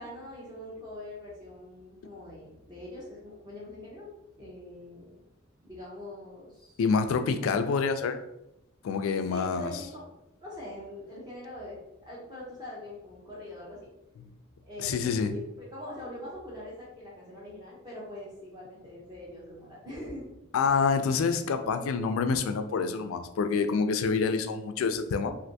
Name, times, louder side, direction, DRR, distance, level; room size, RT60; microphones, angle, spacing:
voice 1, 0.0-4.1 4.4-5.2 5.6-6.8 9.3-10.1 10.4-13.9 14.6-20.3, left 1 dB, 20° right, -6 dB, 0.7 m, -43 dB
voice 2, 6.8-8.2 8.8-9.7 14.8-15.3 20.5-25.3, left 5 dB, 75° left, 8 dB, 0.3 m, -27 dB
3.3 x 2.5 x 2.6 m, 0.88 s
head